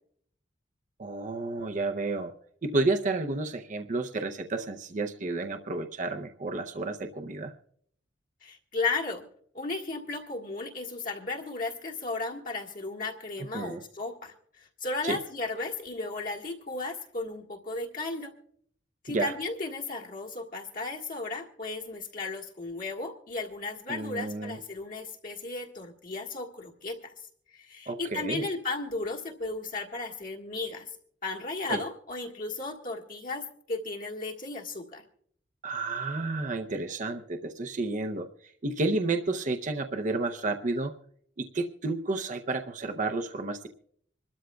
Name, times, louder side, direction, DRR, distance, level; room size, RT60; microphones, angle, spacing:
voice 1, 1.0-2.3 2.6-7.5 13.4-13.8 15.0-15.2 19.1-19.3 23.9-24.6 27.9-28.5 31.7-31.8 35.6-41.0 41.4-43.7, right 2 dB, 45° right, 6 dB, 0.6 m, -31 dB
voice 2, 8.4-9.2 9.5-18.3 19.0-27.1 27.5-30.9 31.2-35.0, left 3 dB, 50° left, 0 dB, 1.6 m, -35 dB
26.0 x 13.0 x 2.3 m, 0.65 s
head